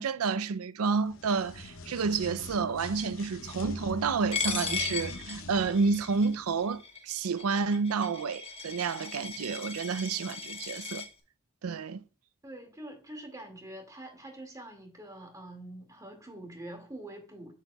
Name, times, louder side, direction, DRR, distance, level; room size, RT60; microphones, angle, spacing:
voice 1, 0.0-11.0 11.6-12.0, right 5 dB, 80° right, 0.5 m, -30 dB
sound 1, 1.0-6.7, left 2 dB, 65° left, 0.9 m, -44 dB
Coin (dropping), 4.3-11.1, left 5 dB, 25° left, 1.2 m, -37 dB
voice 2, 12.4-17.5, right 1 dB, 15° right, 2.1 m, -45 dB
7.8 x 7.3 x 2.3 m
head